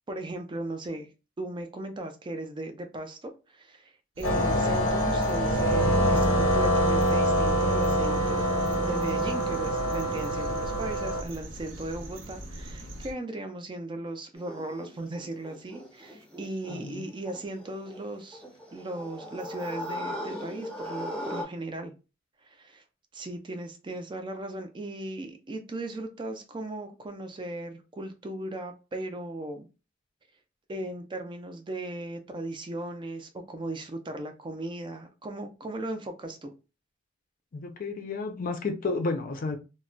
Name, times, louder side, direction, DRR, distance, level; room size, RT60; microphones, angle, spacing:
voice 1, 0.1-1.1 1.4-8.5 8.7-18.4 18.7-21.9 22.4-22.8 23.1-29.7 30.7-36.5, right 2 dB, 25° right, 0.4 m, -37 dB
sound 1, 4.2-11.2, equal, 85° left, 0.7 m, -25 dB
sound 2, 4.2-13.1, right 1 dB, 75° right, 0.6 m, -41 dB
voice 2, 4.4-4.7 16.7-17.0 37.5-39.6, left 3 dB, 45° left, 0.4 m, -32 dB
sound 3, 14.3-21.4, equal, 5° left, 0.7 m, -39 dB
2.2 x 2.1 x 3.7 m
head